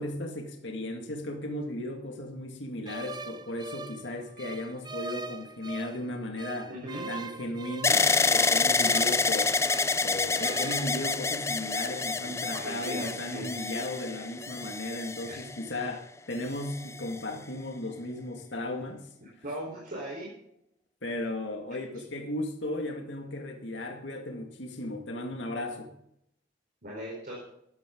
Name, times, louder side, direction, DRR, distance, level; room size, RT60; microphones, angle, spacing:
voice 1, 0.0-6.7 7.1-9.6 10.0-19.1 21.0-25.9, left 1 dB, 75° left, 3 dB, 2.2 m, -35 dB
sound 1, 2.9-6.0 6.4-10.0 10.3-10.9, right 3 dB, 25° right, 0.7 m, -42 dB
voice 2, 6.7-7.0 12.3-13.5 15.2-15.4 19.4-20.3 26.8-27.4, right 1 dB, 50° right, -3 dB, 4.3 m, -38 dB
sound 2, 7.8-15.8 16.6-17.2, left 4 dB, 15° left, 0.5 m, -28 dB
14.5 x 12.0 x 3.9 m, 0.77 s
head